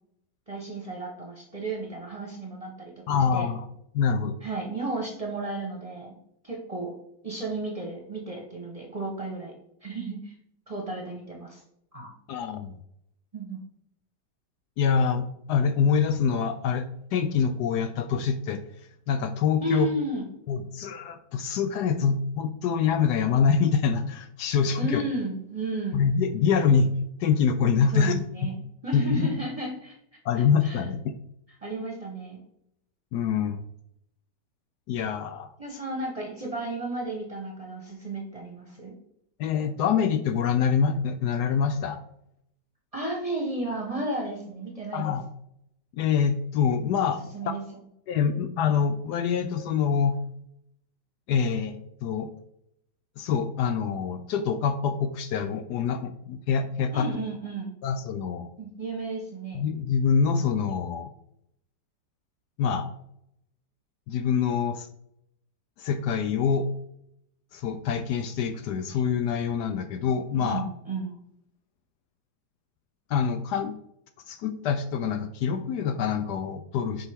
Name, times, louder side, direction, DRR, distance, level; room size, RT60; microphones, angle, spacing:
voice 1, 0.5-3.5 4.4-6.2 6.4-6.9 7.2-9.5 9.8-10.3 10.7-11.6 11.9-12.1 13.3-13.6 19.6-20.3 24.8-26.0 27.9-29.9 30.6-30.8 31.6-32.4 35.6-38.9 42.9-45.1 47.3-47.6 56.9-57.7 58.6-59.6 70.3-71.1, right 2 dB, 25° right, 0 dB, 1.0 m, -33 dB
voice 2, 3.1-3.6 3.9-4.3 12.3-12.7 14.8-18.6 19.1-19.9 20.5-25.0 25.9-26.9 27.2-28.1 28.9-29.3 30.2-31.1 33.1-33.6 34.9-35.5 39.4-42.0 44.9-45.2 45.9-47.5 48.1-50.2 51.3-52.3 53.2-57.1 57.8-58.5 59.5-61.1 62.6-62.9 64.1-64.9 65.8-66.7 67.5-70.6 73.1-73.8 74.3-77.1, left 6 dB, 75° left, 8 dB, 1.1 m, -25 dB
7.2 x 4.6 x 3.5 m, 0.76 s
omnidirectional pair, 1.9 m